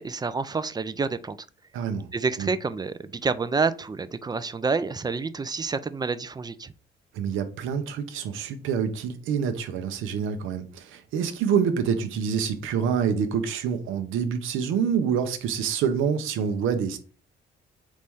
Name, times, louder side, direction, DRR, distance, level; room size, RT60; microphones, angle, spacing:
voice 1, 0.0-1.4 2.1-6.7, right 4 dB, 20° right, 0.3 m, -28 dB
voice 2, 1.7-2.1 2.4-2.5 7.1-17.0, right 7 dB, 90° right, 0.7 m, -26 dB
4.1 x 3.1 x 3.5 m
cardioid pair, 90°, 20 cm